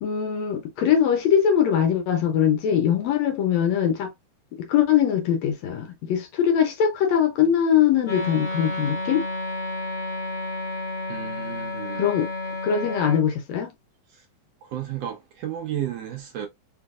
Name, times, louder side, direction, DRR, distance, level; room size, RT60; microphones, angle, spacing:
voice 1, 0.0-4.1 4.5-9.3 12.0-12.3 12.6-13.7, left 8 dB, 70° left, 1.9 m, -22 dB
Wind instrument woodwind instrument, 8.0-13.2, left 2 dB, 35° left, 1.3 m, -31 dB
voice 2, 11.1-12.1 14.1-14.2 14.6-16.5, right 11 dB, 70° right, 1.7 m, -33 dB
4.6 x 3.7 x 2.4 m
omnidirectional pair, 3.5 m